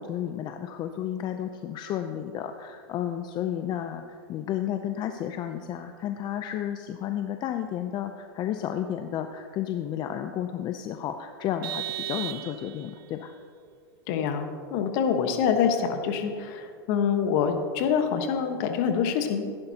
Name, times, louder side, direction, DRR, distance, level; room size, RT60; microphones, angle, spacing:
voice 1, 0.0-13.3, left 10 dB, 35° left, 7 dB, 0.6 m, -32 dB
Vehicle horn car horn honking, 11.6-13.0, right 13 dB, 65° right, 0.8 m, -35 dB
voice 2, 14.1-19.7, left 7 dB, 55° left, 6 dB, 1.3 m, -26 dB
14.5 x 11.0 x 2.9 m, 2.2 s
hypercardioid pair, 115°, 13 cm